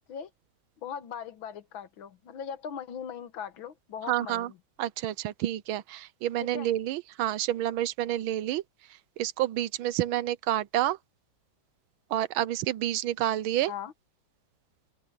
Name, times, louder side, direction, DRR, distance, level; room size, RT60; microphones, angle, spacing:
voice 1, 0.8-4.6 6.4-6.7 13.7-13.9, left 8 dB, 80° left, 2.0 m, -39 dB
voice 2, 4.1-4.5 4.8-8.6 9.2-11.0 12.1-13.7, right 13 dB, 90° right, 1.5 m, -29 dB
omnidirectional pair, 2.2 m